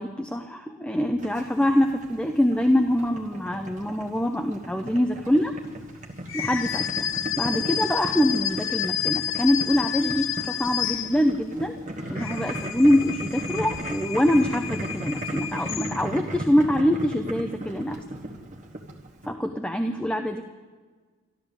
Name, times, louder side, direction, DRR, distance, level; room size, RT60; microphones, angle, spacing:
voice 1, 0.0-5.5 6.3-7.1 7.4-11.8 12.1-18.0 19.3-20.4, left 1 dB, 5° left, 5 dB, 0.5 m, -24 dB
Boiling, 1.2-19.3, right 1 dB, 35° right, 1.3 m, -36 dB
sound 1, 6.3-11.5 12.0-16.3, left 11 dB, 65° left, 0.5 m, -31 dB
13.0 x 12.5 x 7.0 m, 1.5 s
head